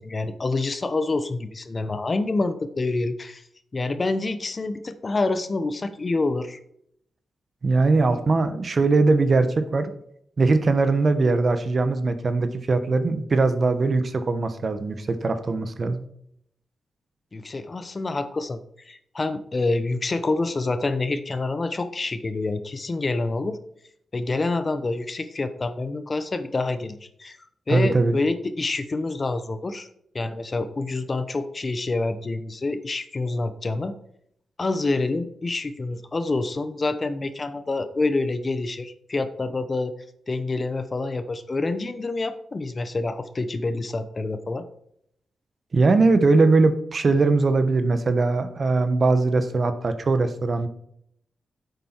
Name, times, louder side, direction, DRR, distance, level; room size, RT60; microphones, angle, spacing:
voice 1, 0.0-3.4 3.7-6.6 17.3-18.6 18.9-23.6 24.1-27.4 27.7-29.9 30.1-33.9 34.6-39.9 40.3-44.6, left 3 dB, 35° left, 10 dB, 0.9 m, -27 dB
voice 2, 7.6-9.9 10.4-16.0 27.7-28.1 45.7-50.7, right 3 dB, 45° right, 10 dB, 1.1 m, -21 dB
10.0 x 8.0 x 4.5 m, 0.72 s
cardioid pair, 100°, 0 cm